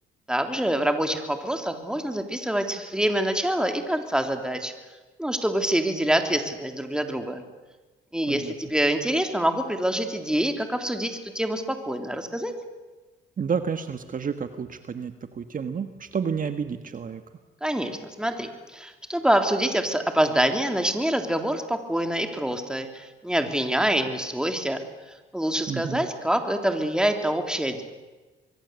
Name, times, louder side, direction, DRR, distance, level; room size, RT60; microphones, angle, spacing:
voice 1, 0.3-4.7 5.2-7.4 8.1-12.5 17.6-24.8 25.3-27.8, right 1 dB, 5° right, 5 dB, 3.5 m, -26 dB
voice 2, 13.4-17.2 25.7-26.1, right 6 dB, 45° right, 8 dB, 1.5 m, -30 dB
25.5 x 22.5 x 8.3 m, 1.2 s
cardioid pair, 90°, 20 cm